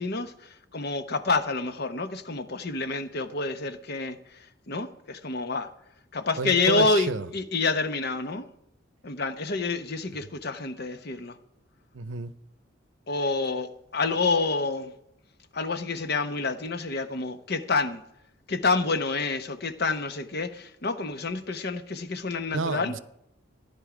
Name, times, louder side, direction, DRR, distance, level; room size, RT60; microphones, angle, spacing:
voice 1, 0.0-4.2 4.7-5.7 6.1-8.5 9.0-11.4 13.1-14.9 15.5-18.0 18.5-22.9, left 3 dB, 55° left, 1.0 m, -28 dB
voice 2, 6.4-7.3 11.9-12.3 22.5-23.0, right 4 dB, 75° right, 0.7 m, -30 dB
15.5 x 10.5 x 5.0 m
head